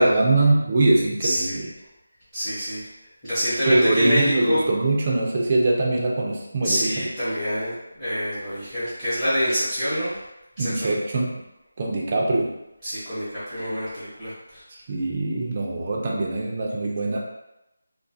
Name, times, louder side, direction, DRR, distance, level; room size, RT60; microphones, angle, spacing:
voice 1, 0.0-1.6 3.6-6.9 10.6-11.4 11.8-12.5 14.7-17.2, right 2 dB, 30° right, -2 dB, 0.4 m, -22 dB
voice 2, 1.2-1.7 2.3-2.9 3.3-4.7 6.6-10.2 10.6-10.9 12.8-14.6, equal, 10° left, -15 dB, 0.8 m, -26 dB
2.4 x 2.3 x 2.6 m, 0.92 s
figure-of-eight pair, 175°, 0 cm